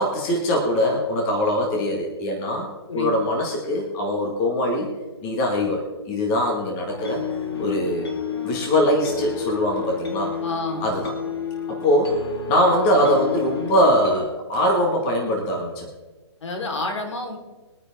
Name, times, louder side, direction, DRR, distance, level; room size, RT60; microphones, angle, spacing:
voice 1, 0.0-2.7 2.9-4.9 5.2-7.2 7.6-8.1 8.4-10.3 10.8-11.1 11.7-12.2 12.5-15.9, left 1 dB, 20° left, 0 dB, 1.8 m, -22 dB
sound 1, 6.9-14.3, left 5 dB, 55° left, 2.5 m, -31 dB
voice 2, 10.4-10.9 16.4-17.4, left 2 dB, 80° left, 2 dB, 4.0 m, -29 dB
23.0 x 9.4 x 3.6 m, 1.2 s
hypercardioid pair, 175°, 15 cm